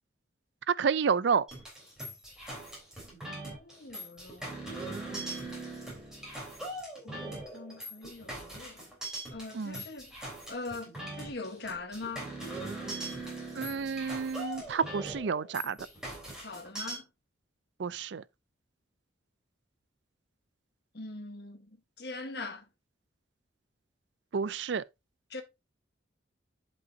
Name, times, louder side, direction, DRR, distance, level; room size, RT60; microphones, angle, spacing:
voice 1, 0.8-1.4 9.5-9.8 13.6-15.8 17.8-18.2 24.3-24.8, right 6 dB, 70° right, 0.4 m, -30 dB
sound 1, 1.5-17.0, right 1 dB, 5° right, 3.8 m, -41 dB
voice 2, 3.5-4.6 7.0-8.8 9.3-12.3 16.4-17.1 20.9-22.7 25.3-25.4, left 3 dB, 55° left, 1.3 m, -42 dB
11.0 x 5.4 x 2.7 m
head